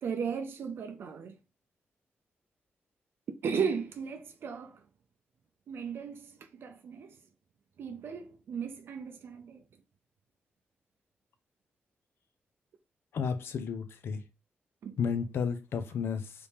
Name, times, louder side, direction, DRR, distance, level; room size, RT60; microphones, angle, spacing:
voice 1, 0.0-1.3 3.4-4.8 5.7-7.2 7.8-9.6 14.8-15.0, right 6 dB, 70° right, 0.4 m, -36 dB
voice 2, 13.1-14.2 15.0-16.3, left 6 dB, 75° left, 0.6 m, -32 dB
3.3 x 2.7 x 3.5 m
cardioid pair, 100°, 4 cm